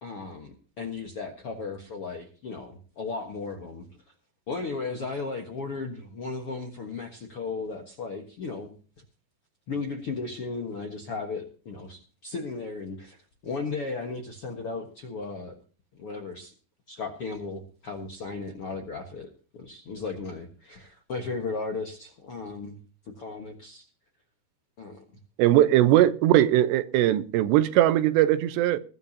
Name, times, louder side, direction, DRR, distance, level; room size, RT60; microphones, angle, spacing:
voice 1, 0.0-3.8 4.5-8.8 9.7-13.2 13.4-15.6 15.9-16.5 16.9-22.8 23.2-23.8 24.8-25.0, left 4 dB, 60° left, 1.5 m, -35 dB
voice 2, 25.4-28.8, right 13 dB, 85° right, 3.1 m, -20 dB
21.0 x 11.5 x 2.8 m
omnidirectional pair, 4.8 m